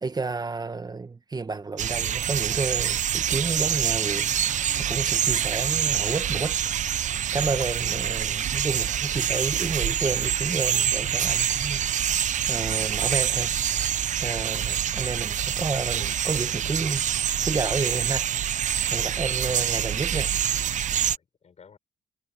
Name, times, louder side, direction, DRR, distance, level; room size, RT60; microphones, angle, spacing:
voice 1, 0.0-6.6 7.3-13.5 14.2-17.0 17.4-18.3 18.9-20.3, right 4 dB, 30° right, 1.3 m, -31 dB
sound 1, 1.8-21.2, right 9 dB, 55° right, 1.0 m, -26 dB
voice 2, 18.9-19.6 20.9-21.8, left 6 dB, 50° left, 6.3 m, -52 dB
supercardioid pair, 60°, 15 cm